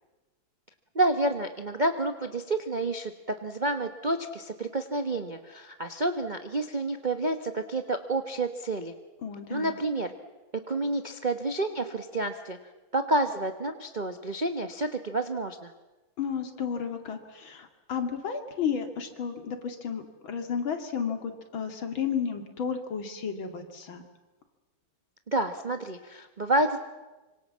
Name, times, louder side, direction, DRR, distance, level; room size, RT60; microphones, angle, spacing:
voice 1, 0.9-8.9 9.5-10.1 10.7-12.6 12.9-15.7 25.3-26.8, right 2 dB, 30° right, 6 dB, 1.0 m, -29 dB
voice 2, 9.2-9.7 16.2-24.0, left 7 dB, 65° left, 5 dB, 3.1 m, -32 dB
26.0 x 24.5 x 7.4 m, 1.1 s
omnidirectional pair, 2.4 m